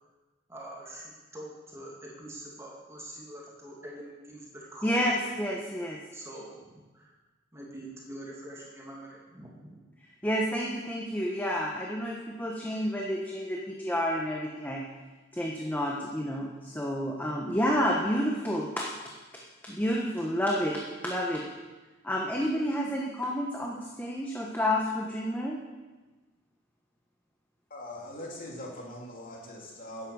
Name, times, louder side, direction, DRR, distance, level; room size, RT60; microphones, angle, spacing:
voice 1, 0.5-5.0 6.1-7.1 7.5-9.8, right 1 dB, 15° right, -3 dB, 2.5 m, -44 dB
voice 2, 4.8-6.0 10.2-14.8 15.3-18.9 19.6-21.4 22.0-25.6, equal, 10° left, -2 dB, 1.2 m, -30 dB
voice 3, 27.7-30.1, left 1 dB, 45° left, -2 dB, 3.1 m, -41 dB
11.0 x 9.6 x 7.0 m, 1.2 s
head